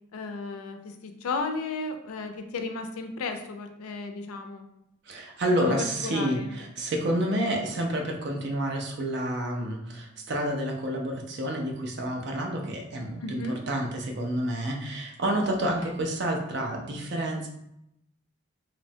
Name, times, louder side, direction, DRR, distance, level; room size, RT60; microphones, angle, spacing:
voice 1, 0.1-4.7 5.5-6.6 13.2-13.6, left 3 dB, 85° left, 6 dB, 0.4 m, -34 dB
voice 2, 5.1-17.5, right 1 dB, 50° right, 1 dB, 0.4 m, -29 dB
3.0 x 2.1 x 2.7 m, 0.80 s
head